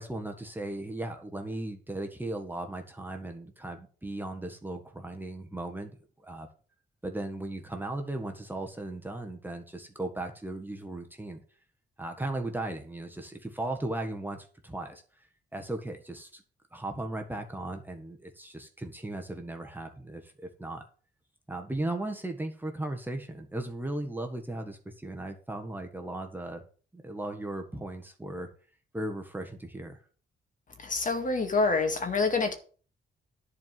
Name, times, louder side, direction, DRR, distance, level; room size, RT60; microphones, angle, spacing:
voice 1, 0.0-6.5 7.0-11.4 12.0-15.0 15.5-16.4 16.7-20.3 20.6-20.8 21.5-26.6 26.9-28.5 28.9-30.0, right 1 dB, 10° right, 3 dB, 1.5 m, -37 dB
voice 2, 30.8-32.5, left 3 dB, 45° left, 5 dB, 2.2 m, -26 dB
11.0 x 4.8 x 7.6 m, 0.41 s
cardioid pair, 95°, 19 cm